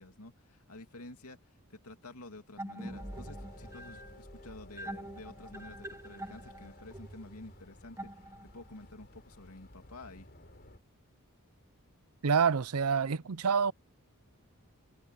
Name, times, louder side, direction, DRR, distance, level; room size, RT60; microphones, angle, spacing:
voice 1, 0.0-10.3, left 2 dB, 85° left, 2.7 m, -50 dB
sound 1, 2.6-8.8, right 1 dB, 15° right, 1.0 m, -45 dB
sound 2, 2.9-10.8, left 1 dB, 45° left, 4.0 m, -54 dB
voice 2, 12.2-13.7, right 6 dB, 80° right, 0.6 m, -27 dB
head